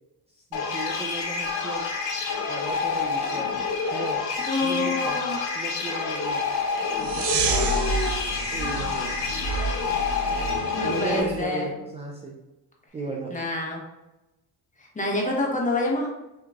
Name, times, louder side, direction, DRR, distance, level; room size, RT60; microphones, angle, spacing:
voice 1, 0.3-2.0 2.5-3.6 3.9-4.3 4.6-5.2 5.5-6.5 7.0-8.0 8.5-9.2 10.8-12.4 12.9-13.4, right 3 dB, 15° right, -1 dB, 0.4 m, -35 dB
sound 1, 0.5-11.2, left 5 dB, 75° left, 1.0 m, -28 dB
voice 2, 4.4-5.4 7.4-8.2 10.7-11.7 13.3-13.8 14.8-16.1, left 2 dB, 20° left, -2 dB, 1.2 m, -27 dB
sound 2, 7.0-11.4, right 4 dB, 65° right, 0.8 m, -29 dB
6.0 x 2.9 x 2.4 m, 1.0 s
cardioid pair, 115°, 39 cm